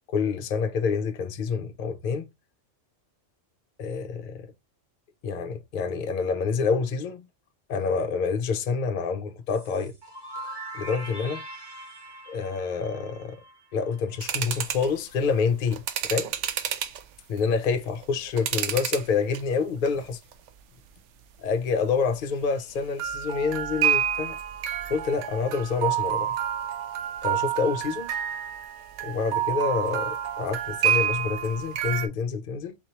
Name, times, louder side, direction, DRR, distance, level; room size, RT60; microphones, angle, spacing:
voice 1, 0.1-2.3 3.8-4.5 5.2-7.3 7.7-9.9 10.7-11.4 12.3-13.4 13.7-16.3 17.3-20.2 21.4-24.4 24.9-26.3 27.2-28.1 29.0-32.8, left 5 dB, 50° left, 0.6 m, -27 dB
sound 1, 9.5-14.2, right 1 dB, 20° right, 1.2 m, -42 dB
sound 2, 14.2-14.9 15.7-17.0 17.7-19.1 19.3-19.9 20.3-20.5 23.0-32.1, right 9 dB, 70° right, 0.9 m, -28 dB
4.2 x 3.0 x 2.9 m
omnidirectional pair, 1.3 m